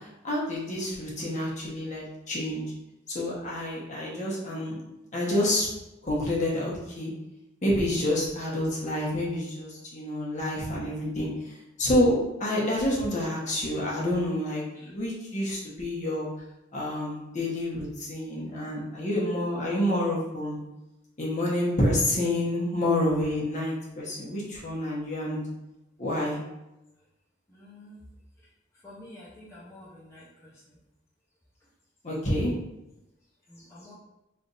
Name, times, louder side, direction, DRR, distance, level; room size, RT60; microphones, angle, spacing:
voice 1, 0.2-2.6 3.1-4.8 5.1-5.7 6.0-7.1 7.6-11.3 11.8-16.3 16.7-20.6 21.2-25.4 26.0-26.4 32.0-32.5, left 1 dB, 40° left, -5 dB, 1.1 m, -28 dB
voice 2, 27.5-28.0 28.8-30.2 33.5-33.9, left 1 dB, 15° left, -9 dB, 0.8 m, -48 dB
3.3 x 2.7 x 3.9 m, 0.94 s
head